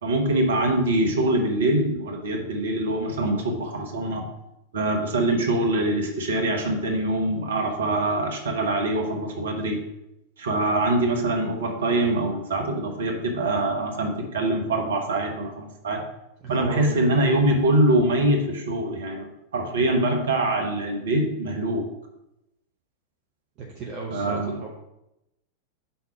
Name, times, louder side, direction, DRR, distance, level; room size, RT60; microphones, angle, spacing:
voice 1, 0.0-4.2 4.7-9.8 10.4-16.0 16.5-19.3 19.5-21.9 24.1-24.6, right 1 dB, 65° right, 2 dB, 1.4 m, -24 dB
voice 2, 16.4-17.0 23.6-24.8, right 4 dB, 40° right, -1 dB, 1.1 m, -35 dB
5.7 x 4.1 x 5.9 m, 0.88 s
figure-of-eight pair, 90°, 0 cm